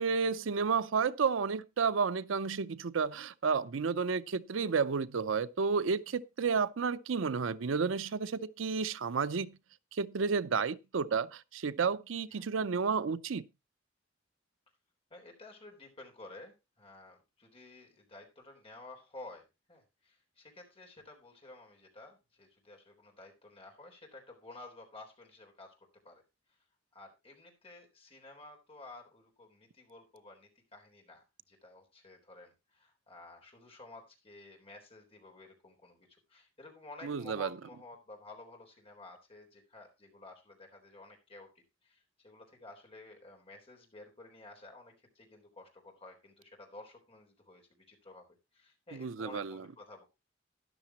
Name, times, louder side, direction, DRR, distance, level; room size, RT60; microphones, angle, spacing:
voice 1, 0.0-9.6 9.9-13.4 37.0-37.5 48.9-49.6, right 5 dB, 80° right, 0.5 m, -31 dB
voice 2, 15.1-25.7 26.0-26.2 26.5-26.6 26.9-41.5 41.8-48.3 48.5-50.0, left 2 dB, 30° left, 3.8 m, -53 dB
13.0 x 10.5 x 2.9 m
head